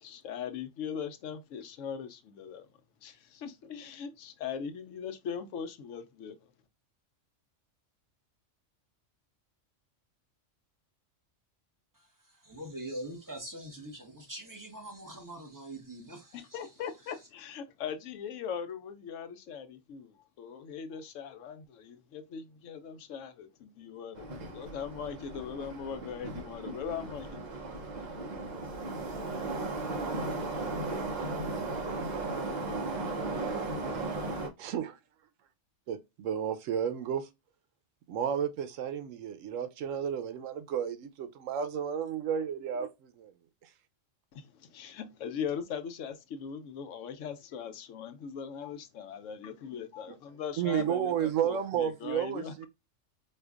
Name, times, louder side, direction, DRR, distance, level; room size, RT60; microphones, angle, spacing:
voice 1, 0.0-2.7 3.0-6.4 16.3-27.6 44.3-52.7, left 7 dB, 80° left, 1.0 m, -40 dB
voice 2, 11.9-16.7 17.0-17.3, right 1 dB, 15° right, 1.1 m, -44 dB
Subway metro underground, 24.2-34.5, right 2 dB, 45° right, 0.7 m, -36 dB
voice 3, 34.6-34.9 35.9-37.3 38.1-43.3 50.6-52.7, right 9 dB, 90° right, 1.0 m, -32 dB
4.4 x 2.4 x 2.4 m
omnidirectional pair, 1.3 m